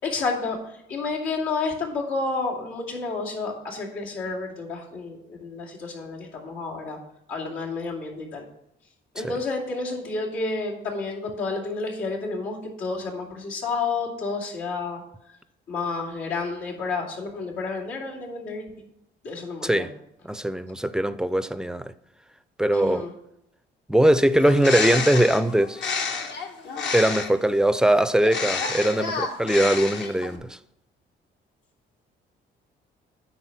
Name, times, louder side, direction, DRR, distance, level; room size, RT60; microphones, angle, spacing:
voice 1, 0.0-7.0 7.3-8.4 9.1-15.0 15.7-18.8 19.2-19.9 22.7-23.1, left 3 dB, 90° left, 2.6 m, -30 dB
voice 2, 20.2-21.9 22.6-23.0 23.9-25.8 26.9-30.6, right 1 dB, 5° right, 0.4 m, -21 dB
Bird, 24.3-27.5 28.2-30.4, left 4 dB, 65° left, 1.2 m, -29 dB
10.0 x 4.2 x 6.0 m
cardioid pair, 90°, 20 cm